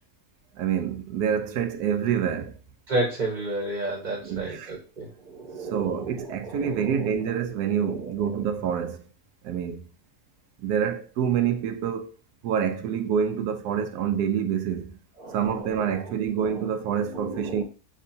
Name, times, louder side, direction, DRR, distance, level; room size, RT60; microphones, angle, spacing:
voice 1, 0.6-2.6 4.2-4.7 5.7-9.1 9.4-9.9 10.6-12.1 12.4-14.9 15.3-17.6, right 8 dB, 80° right, 1.1 m, -27 dB
voice 2, 2.9-7.1 7.8-8.4 15.2-17.6, right 2 dB, 35° right, 0.9 m, -33 dB
6.1 x 2.6 x 2.7 m
omnidirectional pair, 1.7 m